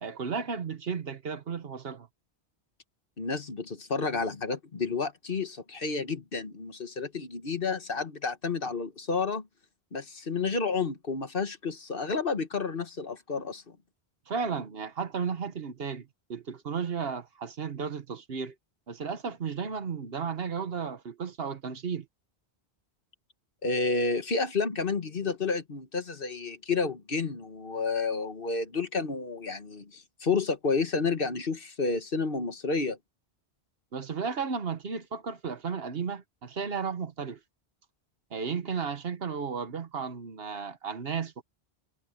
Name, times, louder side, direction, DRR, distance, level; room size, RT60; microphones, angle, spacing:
voice 1, 0.0-2.1 14.3-18.6 18.9-22.1 33.9-37.4 38.3-41.4, right 6 dB, 65° right, 1.3 m, -34 dB
voice 2, 3.2-9.5 9.9-13.6 23.6-33.0, left 4 dB, 55° left, 1.7 m, -30 dB
omnidirectional pair, 1.1 m